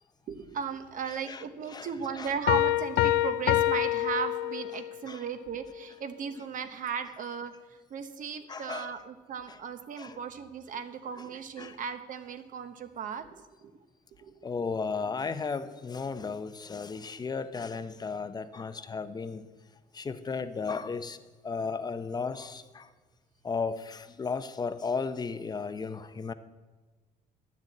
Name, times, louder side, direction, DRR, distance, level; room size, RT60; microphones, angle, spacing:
voice 1, 0.3-13.7 14.2-14.4, right 6 dB, 50° right, 1.0 m, -36 dB
Piano, 2.5-5.0, left 15 dB, 80° left, 0.4 m, -26 dB
voice 2, 8.5-8.9 10.0-10.2 11.6-11.8 14.4-19.4 19.9-21.2 21.4-22.9 23.4-26.3, left 5 dB, 25° left, 0.6 m, -34 dB
10.5 x 6.5 x 8.4 m
cardioid pair, 110°, 17 cm